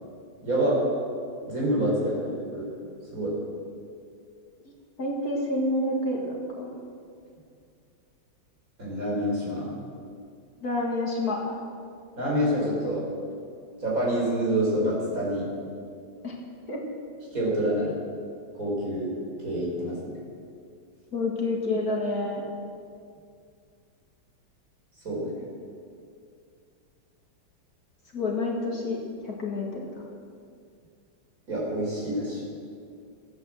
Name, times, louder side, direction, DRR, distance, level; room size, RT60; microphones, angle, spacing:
voice 1, 0.4-0.8 1.5-2.7 3.1-3.3 8.8-9.7 12.2-13.0 13.8-15.5 17.3-18.0 18.5-19.1 19.4-20.1 25.0-25.3 31.5-32.4, right 1 dB, 45° right, -5 dB, 4.7 m, -27 dB
voice 2, 5.0-6.7 10.6-11.6 16.2-16.4 16.7-16.8 21.1-22.4 28.1-30.0, left 2 dB, 50° left, -1 dB, 2.2 m, -28 dB
15.0 x 8.9 x 7.5 m, 2.3 s
omnidirectional pair, 2.1 m